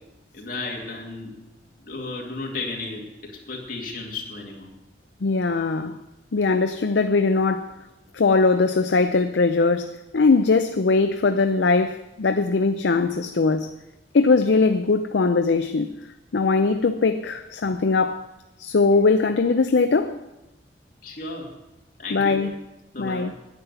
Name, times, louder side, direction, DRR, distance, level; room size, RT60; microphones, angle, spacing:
voice 1, 0.3-1.3 1.8-4.7 21.0-21.5 22.0-22.5 22.9-23.4, left 3 dB, 50° left, 2.5 m, -34 dB
voice 2, 5.2-6.0 6.3-7.7 8.1-13.7 14.1-15.9 16.3-18.3 18.6-20.2 22.1-22.5 23.0-23.3, left 4 dB, 80° left, 0.5 m, -20 dB
9.7 x 9.6 x 6.8 m
head